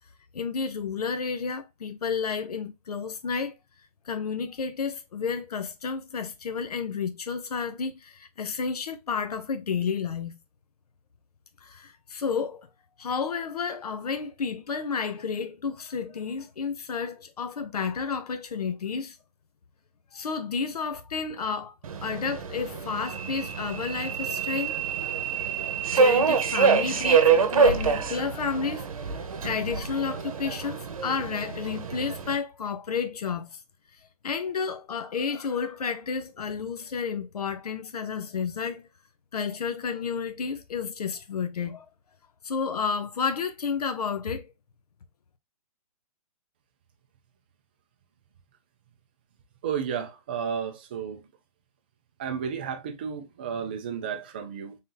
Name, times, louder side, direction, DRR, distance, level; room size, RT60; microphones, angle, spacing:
voice 1, 0.3-3.5 4.1-10.4 11.6-12.7 13.0-19.2 20.1-21.7 22.0-24.8 25.9-33.6 34.2-38.9 39.3-41.9 42.4-44.5, left 6 dB, 90° left, 0.7 m, -31 dB
Subway metro underground, 21.8-32.4, right 6 dB, 65° right, 0.8 m, -26 dB
voice 2, 49.6-51.2 52.2-54.8, right 7 dB, 15° right, 0.4 m, -32 dB
3.7 x 2.7 x 3.8 m
hypercardioid pair, 170°, 19 cm